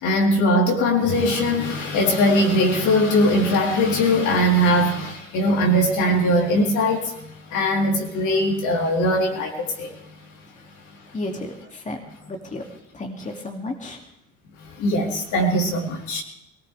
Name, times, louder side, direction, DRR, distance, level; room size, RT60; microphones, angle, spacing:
voice 1, 0.0-10.3 10.9-11.2 14.6-16.2, equal, 60° left, 0 dB, 3.6 m, -21 dB
voice 2, 11.1-12.0 12.3-12.6 12.9-14.0, left 2 dB, 20° left, 1 dB, 2.4 m, -32 dB
23.0 x 17.5 x 3.4 m, 0.79 s
hypercardioid pair, 65°, 34 cm